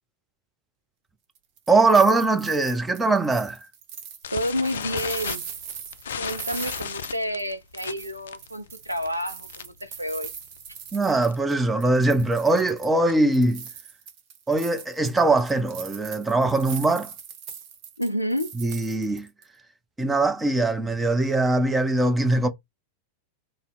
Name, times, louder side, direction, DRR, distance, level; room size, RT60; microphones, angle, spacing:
sound 1, 1.4-7.5 7.8-11.5 11.8-13.0 13.3-19.4, right 7 dB, 45° right, 0.9 m, -41 dB
voice 1, 1.7-3.6 10.9-13.6 14.5-17.1 18.6-19.3 20.0-22.5, right 2 dB, 10° right, 0.6 m, -21 dB
sound 2, 4.2-9.9 10.1-10.4 10.7-10.8 11.1-11.3 11.8-13.4, left 7 dB, 65° left, 0.3 m, -35 dB
voice 2, 4.3-5.4 6.2-10.3 18.0-18.5, equal, 90° right, 0.4 m, -29 dB
2.6 x 2.1 x 4.0 m
figure-of-eight pair, 90°, 0 cm